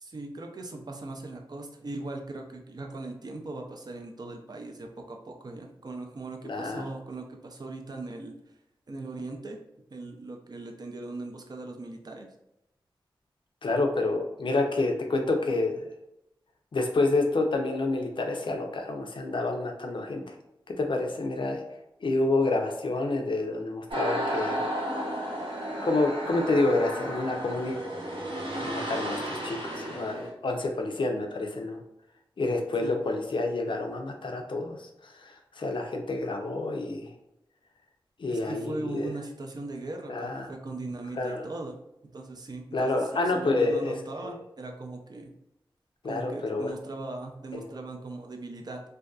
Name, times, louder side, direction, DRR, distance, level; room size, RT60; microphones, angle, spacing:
voice 1, 0.0-8.3 8.9-9.6 9.9-12.3 32.8-33.0 38.3-41.8 42.0-43.0 43.3-45.3 46.0-48.8, right 2 dB, 50° right, 2 dB, 0.4 m, -39 dB
voice 2, 6.4-6.9 13.6-15.9 16.7-20.3 20.8-21.6 22.0-24.6 25.8-27.8 28.5-31.8 32.4-37.1 38.2-39.1 40.1-40.5 41.1-41.5 42.7-43.9 44.2-44.4 46.0-46.7 47.5-47.7, left 2 dB, 65° left, 3 dB, 0.5 m, -28 dB
sound 1, 23.9-30.3, equal, 75° right, 0.8 m, -33 dB
2.5 x 2.2 x 2.3 m, 0.84 s
cardioid pair, 50°, 9 cm